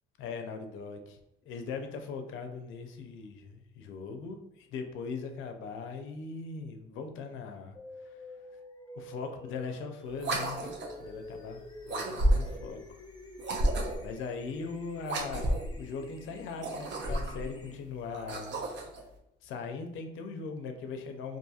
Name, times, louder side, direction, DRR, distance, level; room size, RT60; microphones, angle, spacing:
voice 1, 0.2-1.2 1.5-8.2 8.9-10.6 11.0-13.0 14.0-15.5 15.8-18.6 19.4-21.4, left 5 dB, 90° left, 6 dB, 0.4 m, -40 dB
sound 1, 7.8-17.8, left 1 dB, 20° left, 0.5 m, -49 dB
sound 2, 10.2-11.0 11.9-12.7 13.4-14.1 15.0-15.8 16.5-17.5 18.1-19.0, right 1 dB, 65° right, 0.5 m, -31 dB
2.7 x 2.5 x 2.3 m, 0.82 s
cardioid pair, 90°, 20 cm